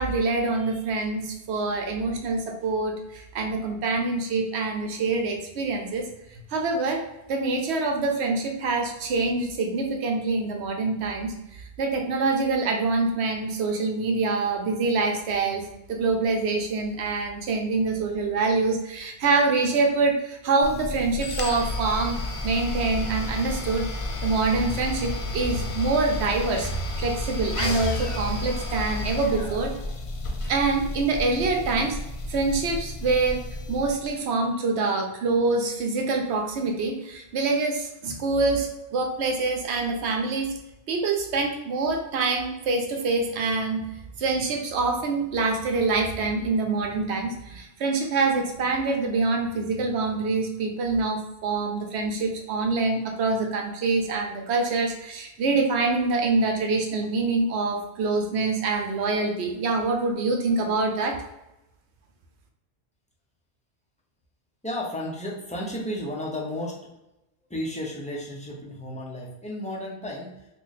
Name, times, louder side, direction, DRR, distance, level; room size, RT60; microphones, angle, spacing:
voice 1, 0.0-6.0 6.5-7.0 7.3-11.3 11.8-15.6 15.9-22.2 22.4-23.8 24.2-26.7 27.0-29.7 30.5-32.0 32.3-33.4 33.7-40.5 40.9-43.9 44.2-61.2, right 3 dB, 85° right, 3 dB, 0.9 m, -25 dB
sound 1, 20.6-34.1, left 2 dB, 65° left, 0.3 m, -32 dB
voice 2, 64.6-66.8 67.5-70.3, left 1 dB, 10° left, -4 dB, 0.5 m, -33 dB
3.0 x 2.4 x 4.0 m, 0.90 s
omnidirectional pair, 1.1 m